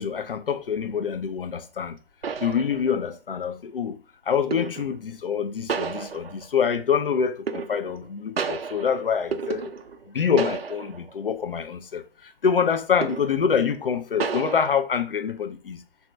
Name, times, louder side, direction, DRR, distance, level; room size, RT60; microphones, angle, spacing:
voice 1, 0.0-2.0 2.4-4.0 4.3-9.7 10.1-12.0 12.4-15.8, left 7 dB, 65° left, 0.5 m, -25 dB
sound 1, 1.6-1.7 2.2-3.2 4.5-5.0 5.7-6.6 7.5-8.1 8.4-10.1 10.4-11.1 11.5-11.7 13.0-13.5 14.2-14.7, right 6 dB, 80° right, 0.5 m, -32 dB
3.3 x 2.8 x 3.2 m
figure-of-eight pair, 135°, 29 cm